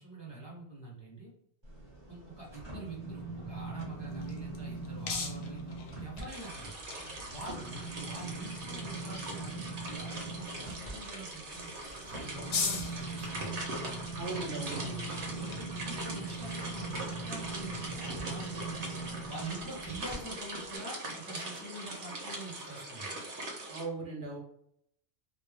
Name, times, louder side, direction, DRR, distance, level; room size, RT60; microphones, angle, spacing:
voice 1, 0.0-1.3 2.1-6.7 7.3-11.7 12.1-13.6 15.0-18.9 19.3-23.1, right 2 dB, 30° left, -5 dB, 0.5 m, -45 dB
sound 1, 1.6-6.3 6.7-20.2 20.6-20.8, right 3 dB, 25° right, 0.9 m, -42 dB
sound 2, 3.7-18.2, left 5 dB, 65° left, 0.7 m, -44 dB
sound 3, 6.3-23.8, right 2 dB, 80° right, 1.1 m, -41 dB
voice 2, 7.5-7.8 14.2-15.1 23.7-24.4, right 2 dB, 55° right, -2 dB, 0.8 m, -39 dB
2.3 x 2.2 x 3.2 m, 0.70 s
omnidirectional pair, 1.1 m